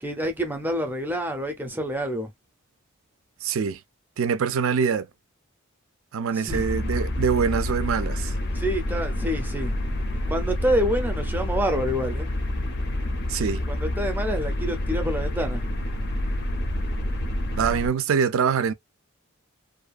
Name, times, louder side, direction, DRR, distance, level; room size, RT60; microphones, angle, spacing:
voice 1, 0.0-2.3 6.3-6.6 8.5-9.7 10.3-12.3 13.7-15.6, equal, 10° right, 0.5 m, -27 dB
voice 2, 3.4-3.8 4.2-5.1 6.1-8.3 13.3-13.6 17.6-18.7, right 6 dB, 65° right, 0.4 m, -24 dB
sound 1, 6.5-17.9, left 1 dB, 50° left, 0.5 m, -28 dB
2.6 x 2.3 x 2.3 m
head